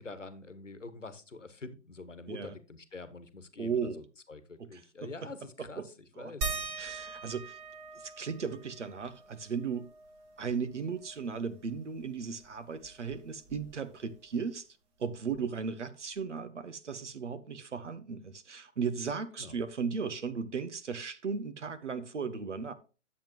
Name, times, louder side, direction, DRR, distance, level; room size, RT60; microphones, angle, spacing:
voice 1, 0.0-6.5 19.4-19.6, left 3 dB, 85° left, 1.2 m, -46 dB
voice 2, 3.6-4.0 4.6-5.1 5.8-5.9 6.2-6.3 6.8-7.6 8.0-9.9 10.4-14.7 15.0-22.7, right 5 dB, 75° right, 0.9 m, -36 dB
sound 1, 6.4-11.5 11.9-12.0 12.3-14.1 15.3-15.4 16.2-16.3, right 4 dB, 25° right, 1.3 m, -42 dB
10.0 x 7.5 x 3.0 m
figure-of-eight pair, 115°, 36 cm